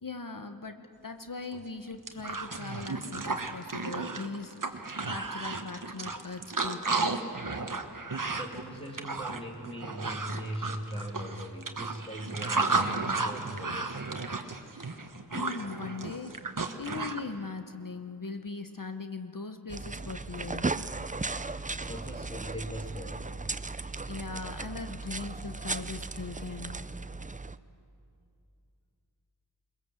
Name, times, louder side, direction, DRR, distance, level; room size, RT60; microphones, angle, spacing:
voice 1, 0.0-7.2 15.3-16.4 16.8-20.8 24.1-26.8, left 4 dB, 45° left, 8 dB, 1.0 m, -40 dB
sound 1, 1.5-1.6 1.9-17.2, right 3 dB, 45° right, 1.3 m, -33 dB
voice 2, 8.3-14.0 21.8-23.3, equal, 10° left, -1 dB, 2.7 m, -40 dB
sound 2, 19.7-27.6, right 3 dB, 20° right, 0.5 m, -36 dB
22.0 x 20.5 x 7.7 m, 2.6 s
wide cardioid pair, 50°, 44 cm